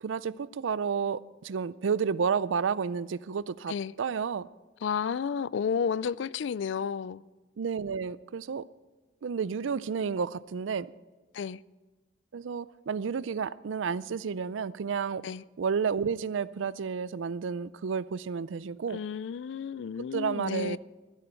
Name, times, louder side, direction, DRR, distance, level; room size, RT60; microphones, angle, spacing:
voice 1, 0.0-4.5 7.6-8.6 9.2-10.9 12.3-15.2 15.6-19.0 20.1-20.8, right 6 dB, 80° right, 0.4 m, -31 dB
voice 2, 4.8-7.2 11.3-11.6 15.2-15.4 18.9-20.8, left 6 dB, 65° left, 0.3 m, -32 dB
15.5 x 13.0 x 4.5 m
head